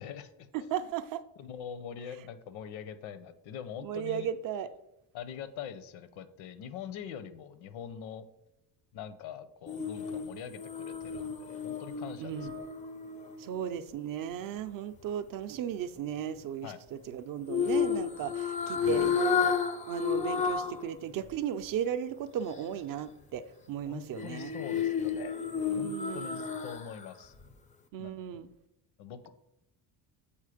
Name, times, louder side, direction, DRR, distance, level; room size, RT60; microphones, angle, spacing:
voice 1, 0.0-0.7 1.4-4.3 5.1-8.2 8.9-12.5 16.6-16.8 18.8-19.1 23.9-25.4 25.7-27.3 28.0-28.2 29.0-29.3, left 8 dB, 85° left, 13 dB, 0.8 m, -43 dB
voice 2, 0.5-1.2 3.8-4.7 12.2-12.5 13.4-19.5 19.9-24.5 25.7-26.3 27.9-28.5, right 9 dB, 50° right, 12 dB, 0.5 m, -35 dB
sound 1, 9.7-13.9 17.5-20.9 21.2-21.3 24.2-27.0 27.4-27.5, left 7 dB, 20° left, 0.3 m, -32 dB
7.3 x 4.4 x 4.9 m, 0.85 s
cardioid pair, 145°, 46 cm